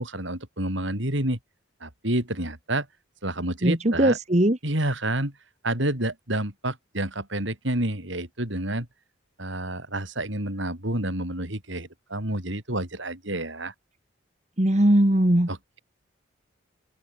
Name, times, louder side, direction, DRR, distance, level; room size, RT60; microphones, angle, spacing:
voice 1, 0.0-1.4 1.8-2.9 3.2-4.2 4.6-5.3 5.6-8.9 9.4-13.7 15.5-15.8, right 1 dB, 70° right, 5.5 m, -29 dB
voice 2, 3.6-4.6 14.6-15.5, right 1 dB, 35° right, 1.6 m, -19 dB
open air
head